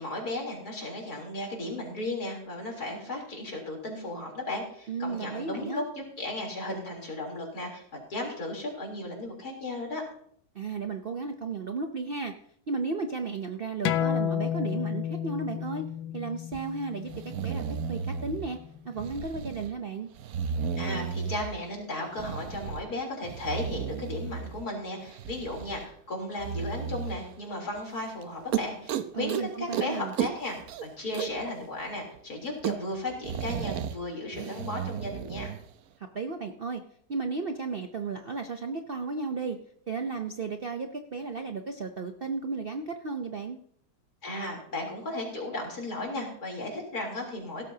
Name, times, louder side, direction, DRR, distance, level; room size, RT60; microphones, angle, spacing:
voice 1, 0.0-5.8 6.2-7.8 8.1-10.0 20.8-35.5 44.2-47.6, left 2 dB, 50° left, 0 dB, 4.1 m, -35 dB
voice 2, 4.9-5.8 10.5-12.3 12.7-15.8 16.1-17.1 17.4-18.6 18.8-20.1 29.1-30.1 36.0-36.8 37.1-39.6 39.9-43.6, right 4 dB, 85° right, 5 dB, 0.5 m, -34 dB
sound 1, 13.9-19.0, left 10 dB, 85° left, 1.6 m, -32 dB
sound 2, 16.5-16.6 17.1-18.5 19.0-19.7 20.1-21.6 22.1-22.9 23.2-24.7 25.0-25.9 26.4-27.2 27.8-27.9 28.2-28.3 28.5-29.4 29.7-29.9 30.1-31.5 31.8-31.9 32.1-32.2 32.4-34.0 34.3-35.6, right 7 dB, 65° right, 0.9 m, -34 dB
16.5 x 13.5 x 2.8 m, 0.64 s
omnidirectional pair, 2.1 m